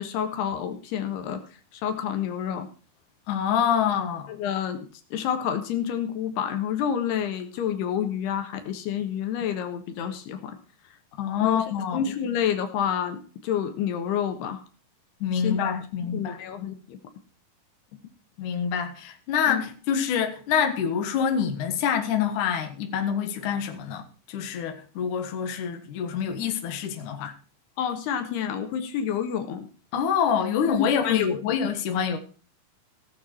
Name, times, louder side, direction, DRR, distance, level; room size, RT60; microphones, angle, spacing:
voice 1, 0.0-1.4 1.7-2.7 4.3-4.8 5.1-10.6 11.4-11.6 11.9-14.6 15.4-15.7 16.0-17.0 19.5-19.6 27.8-29.7 30.6-31.8, left 8 dB, 85° left, 3.4 m, -29 dB
voice 2, 3.3-4.3 11.2-12.0 15.2-16.4 18.4-27.3 29.9-32.2, left 7 dB, 60° left, 2.6 m, -26 dB
17.0 x 7.4 x 4.5 m
omnidirectional pair, 4.6 m